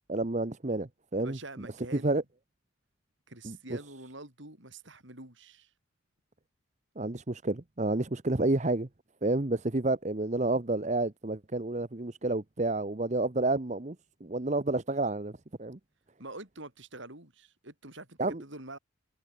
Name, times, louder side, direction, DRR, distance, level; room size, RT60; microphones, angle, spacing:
voice 1, 0.1-1.4 2.0-2.2 3.4-3.6 7.0-8.9 9.2-14.0 14.2-15.8 18.2-18.4, right 2 dB, 35° right, 0.9 m, -30 dB
voice 2, 1.2-2.2 3.3-5.7 16.2-18.8, right 2 dB, 60° right, 5.3 m, -46 dB
head